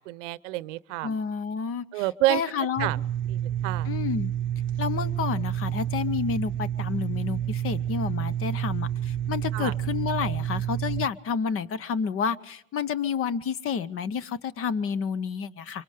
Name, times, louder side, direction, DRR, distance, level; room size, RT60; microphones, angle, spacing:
voice 1, 0.0-1.1 1.9-2.4 2.8-3.0 3.3-3.9 9.5-9.7, right 17 dB, 65° right, 19 dB, 0.8 m, -28 dB
voice 2, 1.0-2.9 3.8-4.3 4.8-15.8, left 6 dB, 35° left, 19 dB, 0.9 m, -30 dB
sound 1, 2.8-11.1, right 10 dB, 30° right, 0.9 m, -29 dB
24.5 x 24.0 x 5.0 m, 0.71 s
hypercardioid pair, 95°, 40 cm